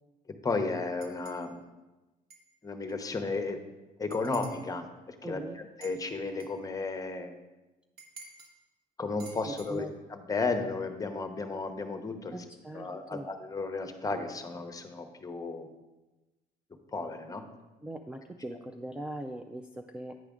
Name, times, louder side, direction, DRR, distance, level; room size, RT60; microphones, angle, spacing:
voice 1, 0.4-1.6 2.6-3.6 4.0-7.4 9.0-12.4 12.7-15.7 16.9-17.4, left 3 dB, 20° left, 7 dB, 0.7 m, -34 dB
sound 1, 1.0-1.5 2.3-2.5 2.9-3.0 4.1-4.7 5.8-6.6 8.0-8.5 9.2-9.7, right 3 dB, 65° right, 1.3 m, -50 dB
voice 2, 5.2-5.6 9.5-9.9 12.3-13.3 17.8-20.2, right 1 dB, 5° right, 5 dB, 0.3 m, -41 dB
9.1 x 4.9 x 3.6 m, 1.1 s
cardioid pair, 110°, 17 cm